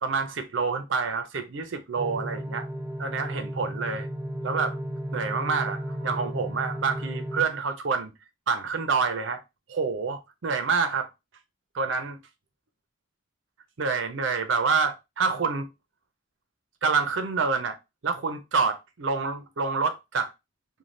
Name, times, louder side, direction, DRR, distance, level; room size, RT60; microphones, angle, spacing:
voice 1, 0.0-2.7 3.0-4.1 4.4-4.8 5.1-8.1 8.5-9.4 9.7-11.1 11.7-12.2 13.8-15.7 16.8-17.8 18.0-20.3, right 5 dB, 75° right, 0.6 m, -27 dB
sound 1, 2.0-7.4, equal, 5° right, 0.3 m, -34 dB
2.6 x 2.2 x 3.2 m
head